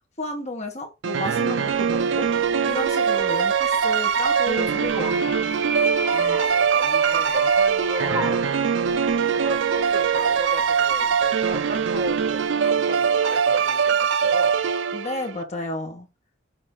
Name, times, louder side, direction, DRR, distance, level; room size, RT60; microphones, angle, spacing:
voice 1, 0.2-2.3 2.6-5.5 14.9-16.1, left 2 dB, 35° left, 1.7 m, -32 dB
sound 1, 1.0-15.3, right 6 dB, 70° right, 0.5 m, -22 dB
sound 2, 2.6-11.7 12.1-12.4, right 3 dB, 15° right, 2.3 m, -33 dB
voice 2, 6.3-8.8 9.3-14.6, right 1 dB, 45° right, 2.1 m, -35 dB
7.3 x 3.3 x 4.2 m
head